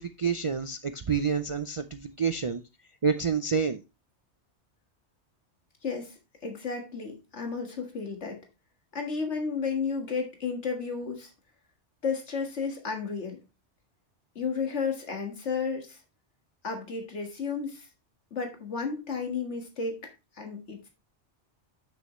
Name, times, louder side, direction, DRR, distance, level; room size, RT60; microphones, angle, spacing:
voice 1, 0.0-2.6 3.0-3.8, right 6 dB, 50° right, 9 dB, 0.4 m, -28 dB
voice 2, 5.8-8.4 8.9-11.3 12.0-13.4 14.4-16.0 16.6-17.9 18.3-20.0 20.3-20.9, left 5 dB, 85° left, 3 dB, 1.9 m, -32 dB
8.3 x 6.3 x 3.0 m, 0.27 s
omnidirectional pair, 1.2 m